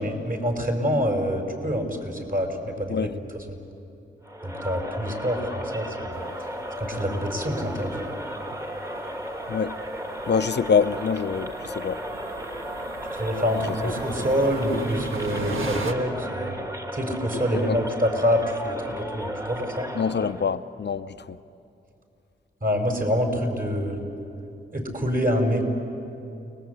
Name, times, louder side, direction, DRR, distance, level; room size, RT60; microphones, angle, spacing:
voice 1, 0.0-3.1 3.5-3.6 4.4-6.2 6.8-8.0 13.1-16.6 16.9-19.9 22.6-24.1 24.7-25.7, equal, 45° right, 5.3 m, -26 dB
Crowd, 4.2-20.5, equal, 15° right, 1.7 m, -35 dB
sound 1, 6.1-15.9, right 3 dB, 75° right, 1.7 m, -38 dB
voice 2, 9.5-9.8 10.3-12.0 13.8-13.9 17.7-17.8 20.0-21.4, left 6 dB, 55° left, 0.7 m, -25 dB
29.5 x 20.0 x 8.2 m
cardioid pair, 50°, 21 cm